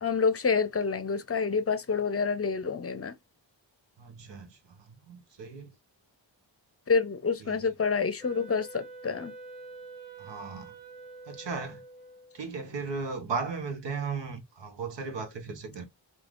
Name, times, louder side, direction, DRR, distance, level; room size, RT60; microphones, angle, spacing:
voice 1, 0.0-3.1 6.9-9.3, left 5 dB, 30° left, 0.7 m, -28 dB
voice 2, 4.0-5.7 7.5-7.6 10.2-10.7 11.3-11.8 12.3-15.8, right 4 dB, 65° right, 1.0 m, -36 dB
Wind instrument woodwind instrument, 8.2-12.5, right 3 dB, 20° right, 1.6 m, -47 dB
3.2 x 2.4 x 2.5 m
cardioid pair, 45°, 46 cm